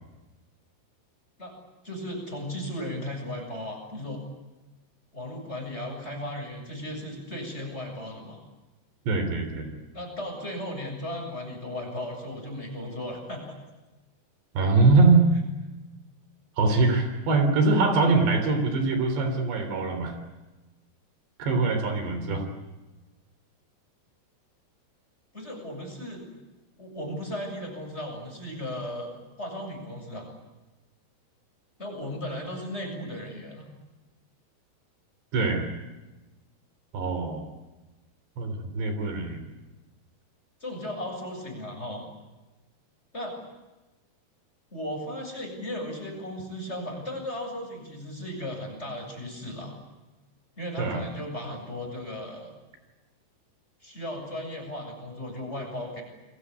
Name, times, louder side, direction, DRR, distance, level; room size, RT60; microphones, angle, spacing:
voice 1, 1.8-4.2 5.1-8.4 9.9-13.6 25.3-26.2 26.8-30.3 31.8-33.6 40.6-42.0 43.1-43.3 44.7-49.7 50.6-52.5 53.8-56.0, left 1 dB, 15° left, 2 dB, 7.6 m, -36 dB
voice 2, 9.1-9.7 14.6-15.3 16.6-20.2 21.4-22.4 35.3-35.7 36.9-37.4 38.4-39.5 50.8-51.1, right 3 dB, 75° right, 7 dB, 5.7 m, -23 dB
29.5 x 22.5 x 8.6 m, 1.1 s
omnidirectional pair, 5.0 m